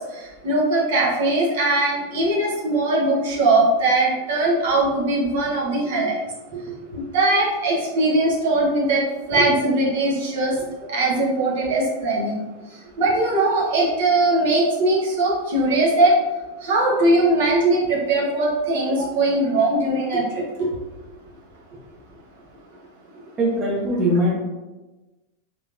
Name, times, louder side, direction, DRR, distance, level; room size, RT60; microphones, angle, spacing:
voice 1, 0.1-6.2 7.1-9.0 9.3-10.5 10.9-12.4 13.0-16.1 16.6-20.7, right 2 dB, 55° right, -4 dB, 0.9 m, -20 dB
voice 2, 23.4-24.3, right 1 dB, 25° right, -4 dB, 0.8 m, -21 dB
3.5 x 3.2 x 2.4 m, 1.1 s
figure-of-eight pair, 90°, 0 cm